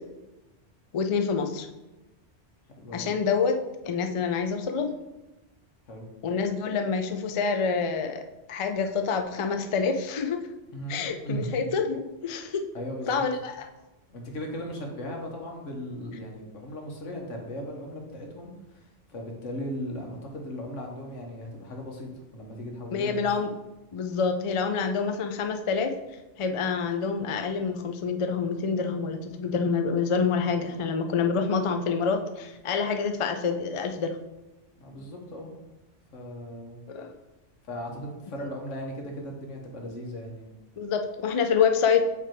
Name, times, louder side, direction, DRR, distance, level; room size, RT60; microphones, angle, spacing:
voice 1, 0.9-1.7 2.9-3.6 3.8-4.9 6.2-8.2 8.5-10.5 10.9-12.6 13.1-13.5 22.9-23.5 23.9-25.9 26.4-34.2 36.9-37.1 40.8-42.1, left 5 dB, 55° left, 5 dB, 0.3 m, -27 dB
voice 2, 2.8-3.1 5.9-6.1 10.7-11.5 12.7-13.2 14.1-23.3 34.8-35.5 36.1-36.8 37.6-40.5, equal, 90° left, 1 dB, 1.5 m, -37 dB
7.6 x 3.3 x 4.5 m, 1.0 s
omnidirectional pair, 1.2 m